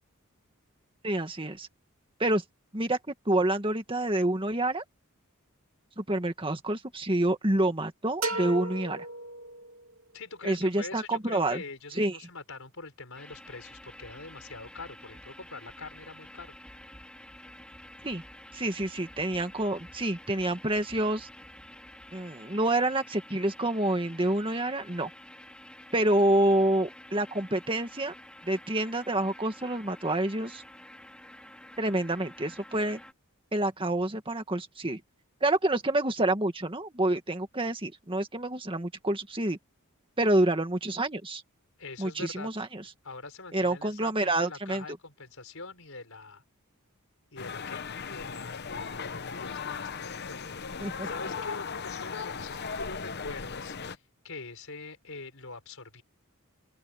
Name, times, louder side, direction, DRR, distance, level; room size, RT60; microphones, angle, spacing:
voice 1, 1.0-1.7 2.2-2.4 2.7-3.0 3.3-4.8 6.0-9.1 10.4-11.6 11.9-12.2 18.0-18.2 18.5-21.3 22.1-25.1 25.9-28.1 28.4-30.6 31.8-33.0 33.5-35.0 35.4-39.6 40.2-41.4 42.0-42.8 43.5-44.8 50.8-51.1, right 1 dB, 25° right, 1.9 m, -28 dB
sound 1, 8.2-10.0, right 2 dB, 70° right, 2.9 m, -34 dB
voice 2, 10.1-16.5 41.8-42.5 43.0-46.4 47.3-50.4 51.0-56.0, left 3 dB, 70° left, 5.5 m, -44 dB
sound 2, 13.1-33.1, left 1 dB, 5° left, 3.5 m, -50 dB
sound 3, 47.4-53.9, left 5 dB, 50° left, 0.9 m, -37 dB
open air
head